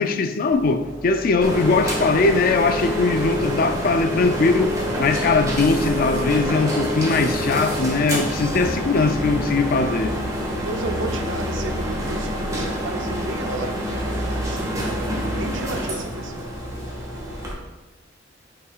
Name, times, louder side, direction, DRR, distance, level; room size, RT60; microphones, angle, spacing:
voice 1, 0.0-10.2, left 3 dB, 50° left, 0.4 m, -20 dB
sound 1, 0.5-3.4 3.7-6.5 6.8-9.5 10.0-12.6, equal, 15° left, 1.9 m, -38 dB
voice 2, 0.9-1.2 10.6-14.0 14.3-15.1 15.3-16.5, right 2 dB, 85° right, 0.7 m, -33 dB
sound 2, 1.4-17.5, equal, 20° right, 1.6 m, -27 dB
9.8 x 5.7 x 2.4 m
head